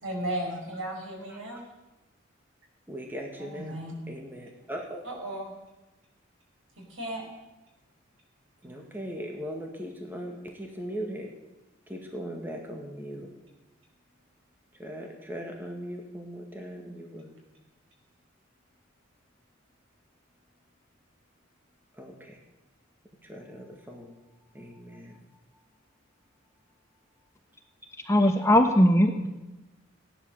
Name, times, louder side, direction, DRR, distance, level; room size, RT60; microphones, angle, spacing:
voice 1, 0.0-1.6 3.4-4.2 5.0-5.5 6.8-7.3 8.6-8.8, right 1 dB, 75° right, 0 dB, 5.7 m, -35 dB
voice 2, 1.3-1.6 2.9-3.8 4.1-5.1 8.6-11.3 11.9-13.3 14.8-17.3 22.0-22.4 23.2-24.1 24.5-25.2 28.2-28.3, equal, 10° right, 1 dB, 1.9 m, -39 dB
voice 3, 28.1-29.3, equal, 15° left, 4 dB, 1.1 m, -20 dB
17.0 x 11.0 x 6.7 m, 1.0 s
head